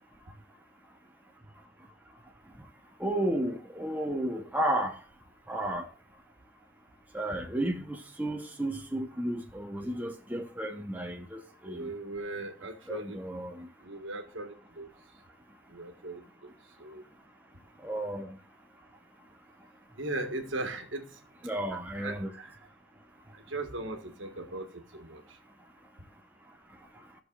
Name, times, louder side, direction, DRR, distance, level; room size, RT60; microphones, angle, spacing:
voice 1, 3.0-5.0 5.5-5.9 7.1-11.9 12.9-13.7 17.8-18.3 21.4-22.3, right 1 dB, 10° right, 0.9 m, -33 dB
voice 2, 11.7-13.2 13.8-14.9 15.7-16.5 16.8-17.0 20.0-21.1 21.7-22.5 23.5-24.7 24.9-25.2, right 2 dB, 75° right, 1.5 m, -38 dB
16.0 x 6.4 x 2.4 m
head